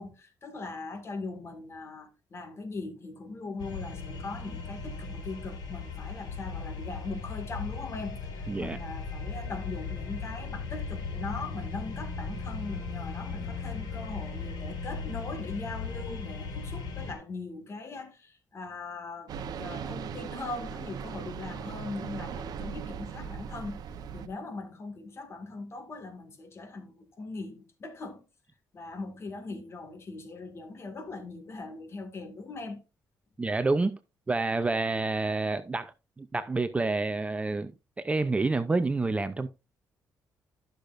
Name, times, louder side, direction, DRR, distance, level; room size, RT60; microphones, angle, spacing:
voice 1, 0.0-19.3 19.6-23.8 24.1-28.2 28.7-32.8, left 3 dB, 40° left, 1.9 m, -40 dB
sound 1, 3.6-17.2, left 4 dB, 75° left, 4.8 m, -37 dB
voice 2, 8.5-8.8 33.4-34.0 34.3-37.7 38.0-39.5, right 3 dB, 20° right, 0.5 m, -28 dB
sound 2, 19.3-24.3, right 7 dB, 70° right, 0.8 m, -38 dB
12.0 x 6.6 x 2.5 m
cardioid pair, 135°, 7 cm